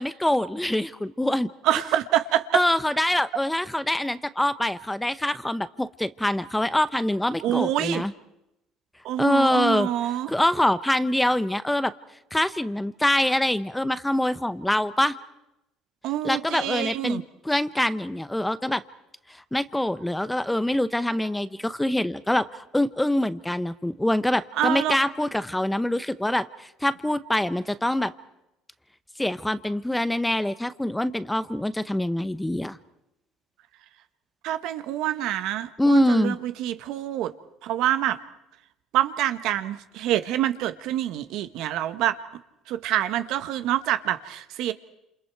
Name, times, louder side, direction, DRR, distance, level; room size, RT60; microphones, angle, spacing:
voice 1, 0.0-1.5 2.5-8.1 9.2-9.9 10.3-11.9 12.3-15.1 16.2-18.8 19.5-28.1 29.2-32.8 35.8-36.4, left 1 dB, 5° left, 14 dB, 0.8 m, -24 dB
voice 2, 1.6-2.6 7.4-8.0 9.0-10.3 16.0-17.2 24.5-25.0 34.4-37.3 37.6-38.2 38.9-42.2 42.7-44.7, right 12 dB, 70° right, 11 dB, 1.1 m, -26 dB
28.0 x 27.5 x 4.7 m, 0.87 s
supercardioid pair, 95°, 0 cm